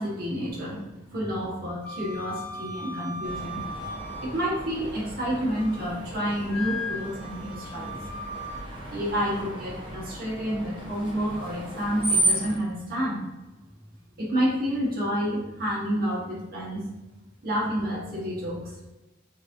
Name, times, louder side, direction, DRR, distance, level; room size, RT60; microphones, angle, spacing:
voice 1, 0.0-3.7 4.2-8.0 8.9-13.2 14.2-16.8 17.4-18.8, equal, 50° right, -5 dB, 1.4 m, -29 dB
Wind instrument woodwind instrument, 1.8-4.8 5.2-6.0 6.5-8.7, left 1 dB, 10° left, 0.9 m, -38 dB
Screech, 3.2-12.5, right 1 dB, 25° right, 0.9 m, -33 dB
5.9 x 2.8 x 2.6 m, 1.0 s
head